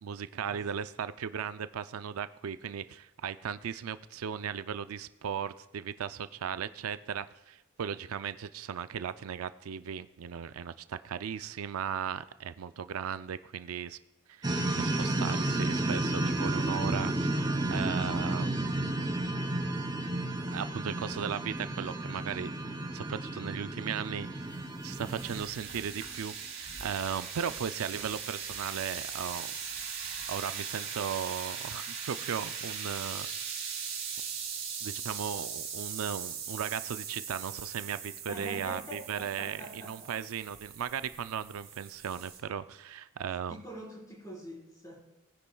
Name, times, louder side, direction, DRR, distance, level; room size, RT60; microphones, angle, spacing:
voice 1, 0.0-14.0 14.3-19.1 20.4-29.5 30.3-33.7 34.8-43.6, right 7 dB, 90° right, 12 dB, 0.4 m, -37 dB
sound 1, 14.4-25.5, right 1 dB, 20° right, 0.6 m, -32 dB
sound 2, 24.2-42.4, right 7 dB, 60° right, 4.0 m, -40 dB
voice 2, 38.3-40.1 43.5-45.1, equal, 15° left, -4 dB, 4.2 m, -45 dB
19.5 x 9.8 x 2.3 m, 1.0 s
head